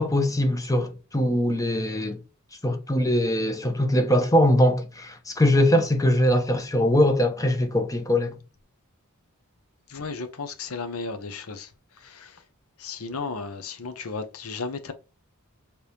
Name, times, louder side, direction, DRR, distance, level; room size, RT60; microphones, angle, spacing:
voice 1, 0.0-2.2 2.6-8.4, left 1 dB, 15° left, 0.8 m, -22 dB
voice 2, 9.9-12.4 12.8-14.9, left 4 dB, 90° left, 0.9 m, -34 dB
5.0 x 3.3 x 2.8 m
head